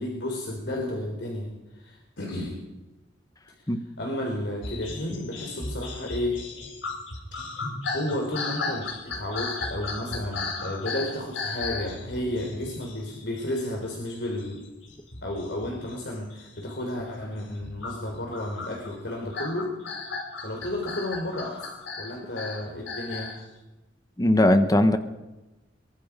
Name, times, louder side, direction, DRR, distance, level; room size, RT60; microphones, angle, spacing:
voice 1, 0.0-2.6 3.6-6.4 7.9-14.7 15.2-19.7 20.4-21.7 22.0-23.4, left 1 dB, 65° left, 0 dB, 3.9 m, -32 dB
sound 1, 4.6-14.1 14.3-16.0 16.3-16.8 17.4-23.4, left 3 dB, 85° left, 4.9 m, -35 dB
voice 2, 24.2-25.0, left 1 dB, 20° left, 8 dB, 1.1 m, -19 dB
23.0 x 23.0 x 5.2 m, 1.1 s
head